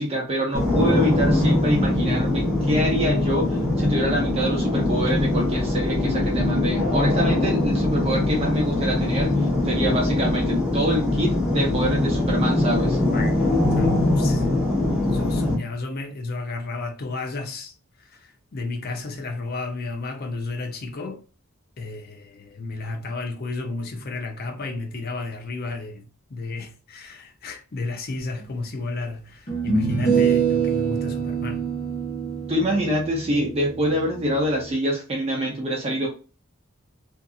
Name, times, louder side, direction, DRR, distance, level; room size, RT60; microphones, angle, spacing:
voice 1, 0.0-9.3 9.6-13.0 32.5-36.1, equal, 30° right, 0.6 m, -25 dB
sound 1, 0.5-15.5, left 1 dB, 5° right, 0.9 m, -22 dB
voice 2, 13.1-14.5 15.1-17.7 18.1-18.2 18.5-21.2 21.8-31.7, left 3 dB, 45° left, 0.5 m, -32 dB
sound 2, 28.4-28.5 29.5-34.7, right 6 dB, 30° left, 1.0 m, -25 dB
2.6 x 2.5 x 2.3 m
head